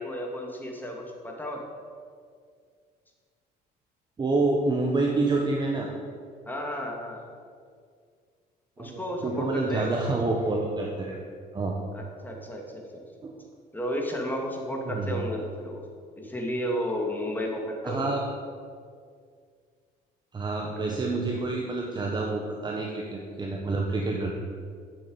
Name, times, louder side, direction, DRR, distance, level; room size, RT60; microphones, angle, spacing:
voice 1, 0.0-1.6 6.5-7.2 8.8-10.0 11.9-13.0 13.7-15.8 16.2-18.2 20.7-21.0, equal, 10° left, 0 dB, 2.4 m, -33 dB
voice 2, 4.2-5.9 8.8-11.2 11.5-11.8 13.2-13.4 14.8-15.3 17.8-18.2 20.3-24.3, right 3 dB, 25° right, 0 dB, 1.3 m, -28 dB
8.3 x 7.8 x 8.7 m, 2.1 s
cardioid pair, 110°, 17 cm